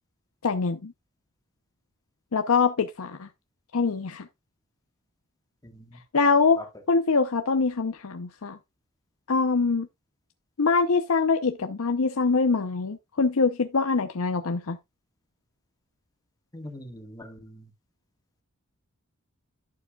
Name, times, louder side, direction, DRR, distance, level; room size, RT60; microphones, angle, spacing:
voice 1, 0.4-0.9 2.3-3.3 3.7-4.3 6.1-6.6 6.9-8.6 9.3-9.9 10.6-14.8, left 4 dB, 75° left, 0.7 m, -24 dB
voice 2, 16.5-17.6, left 1 dB, 15° left, 1.6 m, -42 dB
11.5 x 7.0 x 2.3 m
head